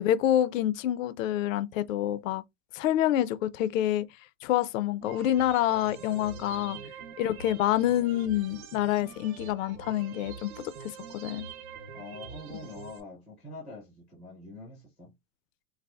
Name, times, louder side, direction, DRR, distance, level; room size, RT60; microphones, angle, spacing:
voice 1, 0.0-2.4 2.7-4.0 4.4-6.8 7.2-11.5, left 12 dB, 65° left, 0.5 m, -27 dB
sound 1, 5.0-13.0, right 6 dB, 65° right, 0.9 m, -45 dB
voice 2, 6.1-6.9 11.9-15.1, left 2 dB, ahead, 0.4 m, -45 dB
4.1 x 2.4 x 2.2 m
supercardioid pair, 175°, 44 cm